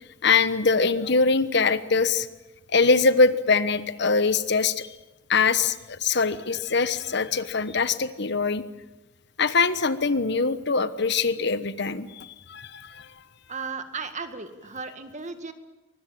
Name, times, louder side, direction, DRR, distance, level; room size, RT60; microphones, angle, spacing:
voice 1, 0.2-2.3 2.7-4.9 5.3-8.6 9.4-13.1, left 4 dB, 60° left, 13 dB, 1.2 m, -23 dB
voice 2, 13.5-15.5, right 4 dB, 40° right, 9 dB, 1.9 m, -35 dB
24.0 x 21.5 x 8.8 m, 1.1 s
head